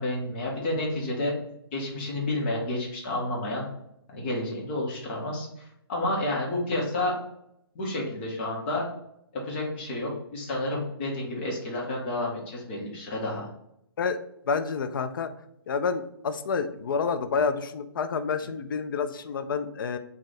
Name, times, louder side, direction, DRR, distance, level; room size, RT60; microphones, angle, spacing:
voice 1, 0.0-1.3 1.7-3.7 4.1-7.2 7.7-8.8 9.3-13.5, left 1 dB, 25° left, -2 dB, 1.0 m, -30 dB
voice 2, 14.5-15.3 15.7-20.0, left 5 dB, 55° left, 10 dB, 0.4 m, -28 dB
3.2 x 2.4 x 4.0 m, 0.77 s
hypercardioid pair, 165°, 13 cm